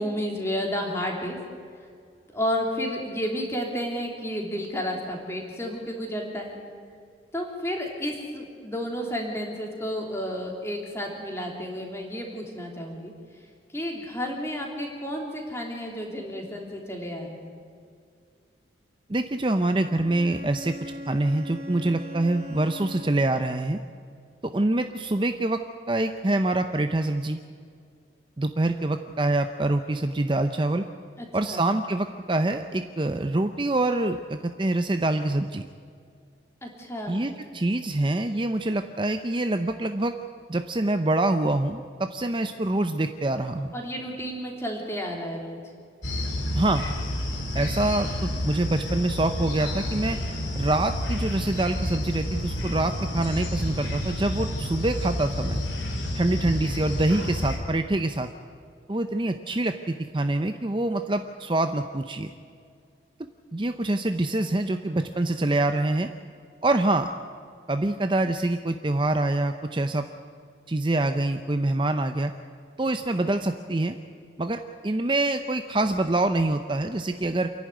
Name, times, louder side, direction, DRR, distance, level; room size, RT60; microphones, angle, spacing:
voice 1, 0.0-1.4 2.3-6.6 7.3-13.4 13.7-17.4 31.2-31.6 36.6-37.2 43.7-45.6, equal, 15° left, 0 dB, 3.2 m, -31 dB
voice 2, 19.1-23.8 24.4-25.6 25.9-27.4 28.4-30.9 31.3-35.7 37.1-40.1 40.5-43.7 46.5-46.9 47.5-50.2 50.5-55.6 56.1-58.3 58.9-62.3 63.5-66.1 66.6-67.1 67.7-70.1 70.7-72.3 72.8-74.0 74.4-77.5, right 2 dB, 25° right, 7 dB, 0.6 m, -25 dB
Bowed string instrument, 19.8-23.6, equal, 50° right, 2.9 m, -40 dB
sound 1, 46.0-57.6, left 1 dB, 80° left, 3.4 m, -30 dB
28.0 x 11.5 x 9.3 m, 2.2 s
head